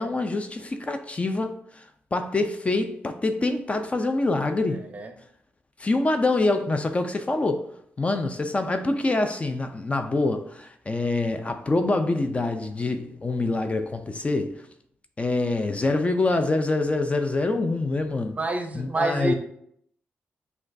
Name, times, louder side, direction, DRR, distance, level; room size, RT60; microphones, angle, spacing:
voice 1, 0.0-1.8 2.1-4.8 5.8-7.7 8.0-14.6 15.2-18.4 18.7-19.3, left 2 dB, 30° left, 0.4 m, -25 dB
voice 2, 18.3-19.3, right 2 dB, 30° right, 0.6 m, -27 dB
6.2 x 2.3 x 2.6 m
cardioid pair, 75°, 4 cm